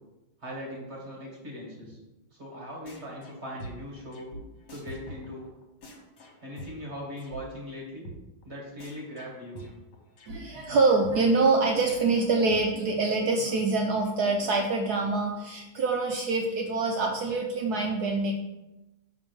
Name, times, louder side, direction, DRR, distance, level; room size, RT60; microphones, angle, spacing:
voice 1, 0.4-2.0 2.3-4.3 4.7-5.5 6.4-8.1 8.4-9.7, equal, 35° right, -2 dB, 1.7 m, -40 dB
sound 1, 2.9-3.3 3.6-7.4 7.7-7.8 8.0-8.2 8.4-8.5 8.8-10.4 10.7-10.8 11.0-11.2 11.4-11.5 11.8-13.2, equal, 55° left, 1.8 m, -44 dB
voice 2, 10.3-18.3, right 3 dB, 75° right, 1 dB, 0.9 m, -25 dB
6.1 x 3.6 x 6.1 m, 0.98 s
omnidirectional pair, 2.4 m